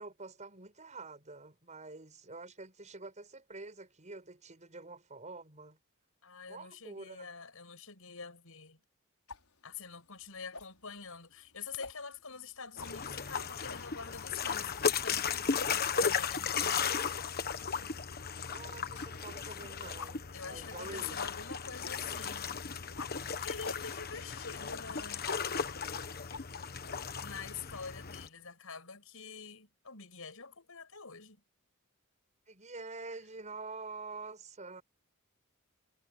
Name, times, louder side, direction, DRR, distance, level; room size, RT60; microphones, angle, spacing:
voice 1, 0.0-5.8 6.5-7.3 18.5-21.2 32.5-34.8, right 3 dB, 35° right, 6.5 m, -47 dB
voice 2, 6.2-8.8 9.6-16.5 20.3-22.6 23.4-25.5 27.2-31.4, left 5 dB, 70° left, 7.3 m, -46 dB
sound 1, 9.3-28.5, left 4 dB, 85° left, 5.0 m, -53 dB
sound 2, 12.8-28.3, left 6 dB, 45° left, 1.3 m, -36 dB
head